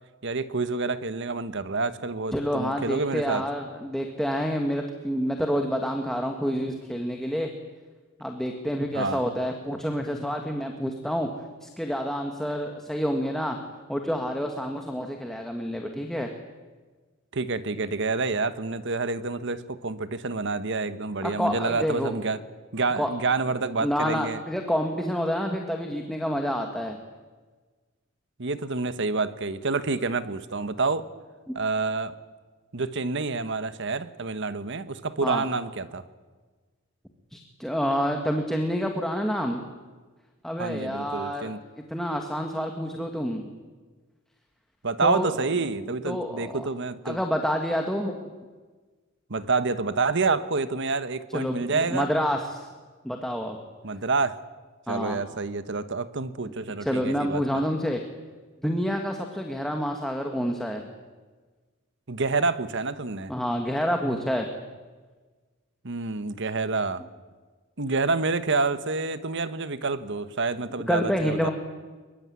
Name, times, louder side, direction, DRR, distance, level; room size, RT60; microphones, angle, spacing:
voice 1, 0.2-3.4 8.9-9.2 17.3-22.4 22.7-24.4 28.4-31.1 31.5-32.1 32.7-36.1 40.6-41.6 44.8-47.2 49.3-52.1 53.8-54.4 54.9-57.6 62.1-63.3 65.8-67.0 67.8-71.5, right 3 dB, 60° right, 12 dB, 1.2 m, -28 dB
voice 2, 2.3-7.5 8.2-11.3 11.6-13.6 13.9-16.3 21.2-22.1 23.0-23.1 23.8-27.0 35.2-35.4 37.3-39.6 40.4-41.5 41.9-43.5 45.0-45.4 46.1-46.6 47.1-48.3 51.3-52.7 53.0-53.6 54.9-55.2 56.8-58.0 58.6-60.9 63.3-64.5 70.9-71.5, equal, ahead, 3 dB, 1.9 m, -28 dB
23.0 x 22.5 x 9.7 m, 1.4 s
head